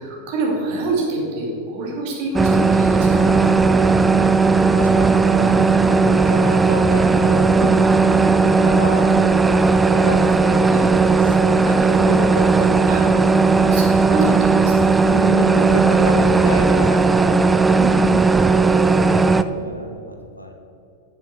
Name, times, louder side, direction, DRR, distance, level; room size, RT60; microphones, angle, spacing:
voice 1, 0.0-3.2 3.8-4.2 7.5-7.7 10.7-10.9 12.9-13.0 13.7-15.4 17.7-18.2, right 3 dB, 45° right, -2 dB, 2.6 m, -26 dB
sound 1, 2.3-19.4, right 4 dB, 10° right, 0.3 m, -16 dB
voice 2, 3.1-3.9 4.5-5.1 5.4-7.6 8.4-9.1 9.9-10.7 11.2-13.0 14.2-14.4 14.9-17.6 18.2-18.7 19.0-20.5, left 1 dB, 85° left, 3 dB, 1.2 m, -30 dB
7.6 x 7.2 x 6.4 m, 2.6 s
figure-of-eight pair, 90°, 0 cm